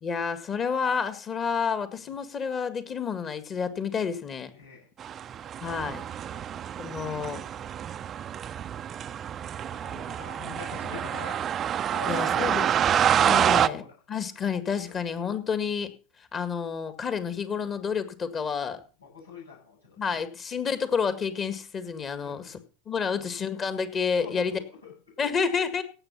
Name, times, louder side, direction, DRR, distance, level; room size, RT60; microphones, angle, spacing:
voice 1, 0.0-4.5 5.6-6.0 6.8-7.4 12.1-12.7 13.1-13.8 14.1-15.9 16.3-18.8 20.0-22.6 22.8-24.6 25.2-25.8, left 6 dB, 30° left, 12 dB, 1.9 m, -29 dB
voice 2, 4.5-4.9 6.3-6.5 7.1-7.2 9.3-11.4 11.9-12.9 13.4-13.9 14.8-15.0 19.0-20.0 22.2-22.4 23.2-23.3 24.2-25.2, left 6 dB, 90° left, -4 dB, 7.8 m, -43 dB
sound 1, 5.0-13.7, right 9 dB, 35° right, 0.6 m, -27 dB
17.0 x 7.4 x 5.6 m, 0.37 s
figure-of-eight pair, 80°, 0 cm